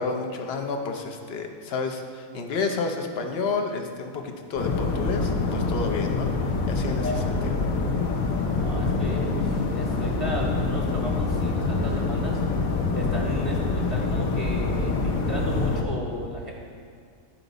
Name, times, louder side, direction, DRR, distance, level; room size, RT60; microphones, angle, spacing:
voice 1, 0.0-6.3 6.7-7.5, left 4 dB, 55° left, 3 dB, 0.9 m, -30 dB
sound 1, 4.6-15.8, left 3 dB, 80° left, 1.2 m, -25 dB
voice 2, 8.6-12.4 12.9-16.5, left 1 dB, 20° left, -2 dB, 0.8 m, -35 dB
12.5 x 5.0 x 3.9 m, 2.2 s
omnidirectional pair, 1.5 m